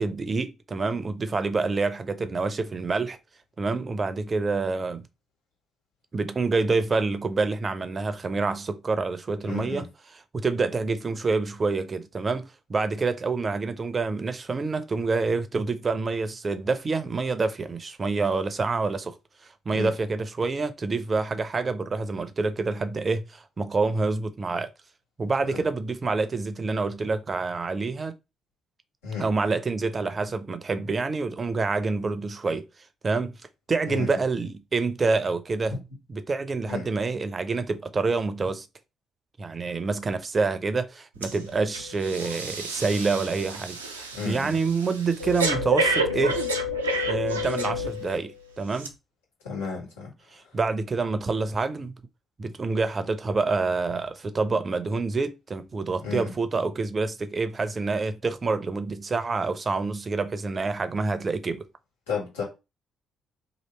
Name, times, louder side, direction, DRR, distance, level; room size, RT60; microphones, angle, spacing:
voice 1, 0.0-3.2 3.6-5.1 6.1-9.9 10.1-19.2 19.7-24.7 25.2-28.1 29.2-32.7 33.0-33.4 33.7-35.8 36.1-38.7 39.4-46.4 47.1-48.9 50.3-51.9 52.4-61.7, right 4 dB, 35° right, 0.6 m, -27 dB
voice 2, 9.4-9.8 19.7-19.9 25.4-25.6 29.0-29.3 33.9-34.2 35.7-35.8 36.7-36.9 44.1-44.6 49.4-50.1 56.0-56.3 62.1-62.4, left 5 dB, 80° left, 1.6 m, -32 dB
Breathing, 41.2-41.4 41.7-48.2 48.7-48.9, equal, 85° right, 0.4 m, -29 dB
3.0 x 2.7 x 4.3 m
figure-of-eight pair, 45°, 0 cm